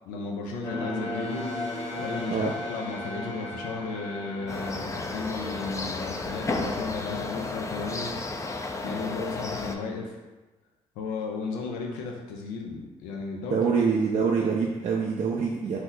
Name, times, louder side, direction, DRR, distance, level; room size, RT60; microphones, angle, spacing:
voice 1, 0.0-8.1 8.8-10.2 11.0-13.7, left 4 dB, 90° left, 1 dB, 0.4 m, -34 dB
sound 1, 0.6-7.9, left 1 dB, 45° left, 1.1 m, -37 dB
sound 2, 4.5-9.8, left 3 dB, 20° left, 0.4 m, -33 dB
voice 2, 13.5-15.8, right 5 dB, 55° right, -1 dB, 0.4 m, -25 dB
2.8 x 2.1 x 3.7 m, 1.2 s
supercardioid pair, 45°, 14 cm